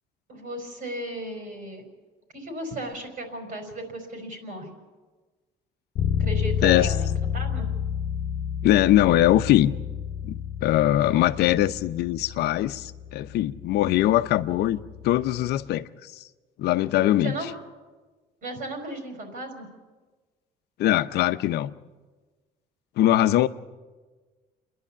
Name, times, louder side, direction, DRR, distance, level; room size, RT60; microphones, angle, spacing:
voice 1, 0.3-1.8 2.3-4.8 6.2-7.7 17.2-17.5 18.4-19.7, right 1 dB, 60° right, 4.6 m, -35 dB
Bass guitar, 6.0-15.7, left 8 dB, 60° left, 1.1 m, -31 dB
voice 2, 6.6-6.9 8.6-9.7 10.2-14.8 15.0-16.2 16.6-17.3 20.8-21.7 23.0-23.5, left 14 dB, 75° left, 0.7 m, -21 dB
28.5 x 11.0 x 8.5 m
cardioid pair, 110°, 17 cm